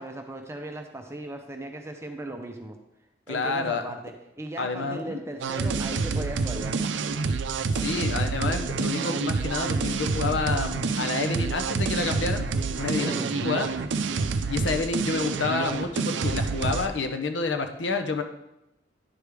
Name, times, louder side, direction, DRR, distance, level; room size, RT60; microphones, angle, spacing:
voice 1, 0.0-2.8 3.3-6.9 13.0-13.4, right 1 dB, 15° right, 4 dB, 0.6 m, -37 dB
voice 2, 3.3-3.9 4.6-5.2 7.7-12.5 12.8-13.7 14.5-18.2, left 4 dB, 75° left, 7 dB, 0.7 m, -29 dB
sound 1, 4.1-4.2 5.0-5.1 5.9-6.0 6.8-6.9 7.8-7.9 8.7-8.8, left 2 dB, 40° left, 0.7 m, -41 dB
sound 2, 5.4-16.9, right 4 dB, 75° right, 0.5 m, -28 dB
10.0 x 4.8 x 3.4 m, 0.87 s
head